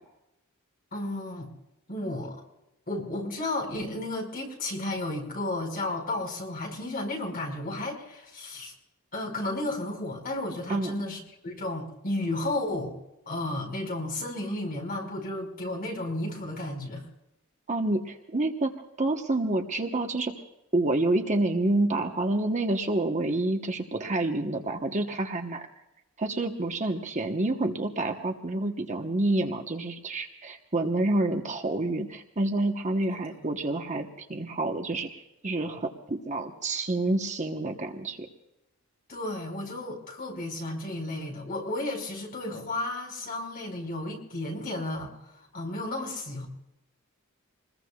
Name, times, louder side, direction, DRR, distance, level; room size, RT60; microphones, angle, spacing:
voice 1, 0.9-1.5 1.9-2.4 2.9-8.7 9.1-12.9 13.3-17.0 39.1-45.1 45.5-46.5, left 1 dB, 40° left, 0 dB, 5.1 m, -33 dB
voice 2, 17.7-18.7 19.0-20.3 20.7-25.7 26.2-38.3, right 2 dB, 35° right, 4 dB, 1.1 m, -28 dB
27.0 x 21.0 x 2.4 m, 0.91 s
head